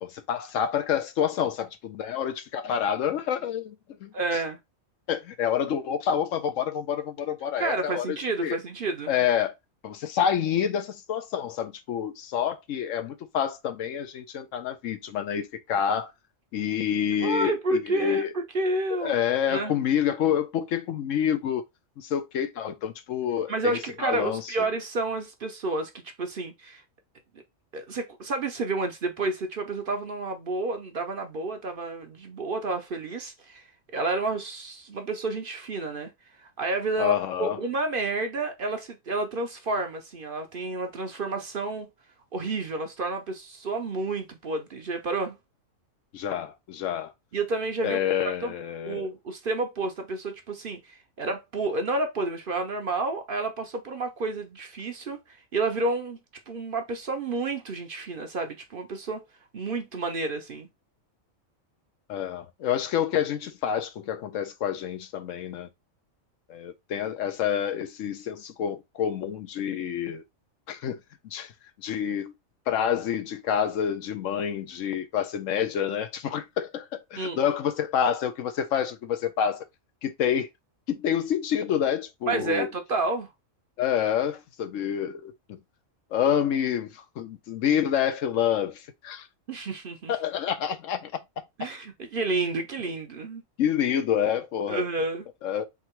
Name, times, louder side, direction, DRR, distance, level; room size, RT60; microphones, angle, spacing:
voice 1, 0.0-3.8 4.0-4.4 5.1-8.6 9.1-9.5 9.8-16.1 16.5-18.3 18.9-21.6 22.0-24.5 37.0-37.6 46.1-47.1 47.8-49.0 62.1-65.7 66.5-70.2 70.7-71.0 71.2-71.5 71.8-72.3 72.7-79.7 80.0-80.5 80.9-82.7 83.8-85.3 86.1-89.3 90.1-91.1 93.6-94.9 95.4-95.6, left 9 dB, 75° left, 1.0 m, -28 dB
voice 2, 4.1-4.6 7.6-9.2 17.2-19.1 19.5-19.7 23.5-26.8 27.7-33.6 33.9-36.1 36.4-41.9 42.3-45.4 47.3-48.0 48.4-48.5 48.9-56.2 56.5-59.3 59.5-60.7 77.2-77.5 82.3-83.3 89.5-90.1 91.6-93.4 94.7-95.2, right 3 dB, 50° right, 0.8 m, -30 dB
3.7 x 2.8 x 4.4 m
omnidirectional pair, 1.4 m